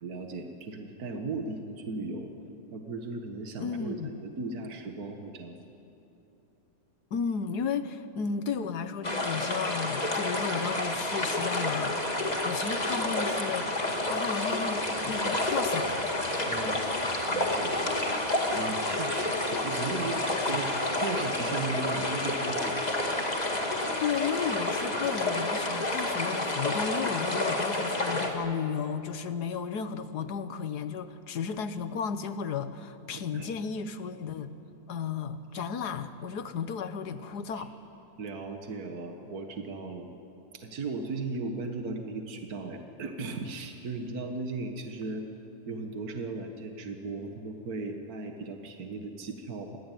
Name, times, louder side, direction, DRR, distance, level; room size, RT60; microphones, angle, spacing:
voice 1, 0.0-2.3 2.7-5.6 9.1-9.2 16.4-16.9 17.3-17.8 18.5-22.8 33.1-33.5 37.5-37.7 38.2-40.1 40.5-45.3 45.7-49.8, right 3 dB, 65° right, 4 dB, 2.1 m, -37 dB
voice 2, 3.6-4.1 7.1-13.7 14.1-15.9 24.0-34.5 34.9-37.7, left 6 dB, 75° left, 11 dB, 1.7 m, -33 dB
sound 1, 9.0-28.3, left 2 dB, 25° left, 2.4 m, -29 dB
27.0 x 21.5 x 9.2 m, 2.9 s
omnidirectional pair, 1.7 m